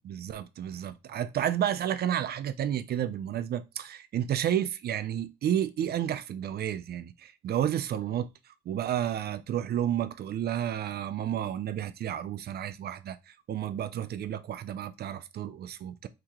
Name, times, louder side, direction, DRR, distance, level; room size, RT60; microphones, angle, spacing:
voice 1, 0.0-8.3 8.7-16.1, right 10 dB, 55° right, 0.4 m, -31 dB
3.5 x 2.9 x 2.9 m
cardioid pair, 90°, 20 cm